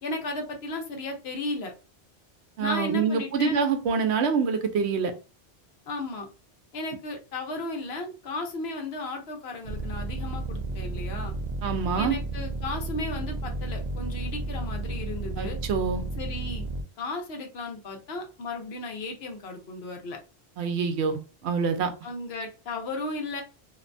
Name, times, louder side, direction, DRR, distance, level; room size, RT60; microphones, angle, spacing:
voice 1, 0.0-1.7 2.6-3.6 5.9-6.3 6.7-11.3 12.0-15.6 16.2-16.6 17.0-20.2 22.0-23.4, left 2 dB, 70° left, 1.0 m, -35 dB
voice 2, 2.6-5.1 11.6-12.2 15.4-16.0 20.6-21.2 21.4-21.9, right 5 dB, 85° right, 0.9 m, -26 dB
sound 1, 9.6-16.8, right 2 dB, 55° right, 0.5 m, -33 dB
2.6 x 2.1 x 2.5 m
omnidirectional pair, 1.1 m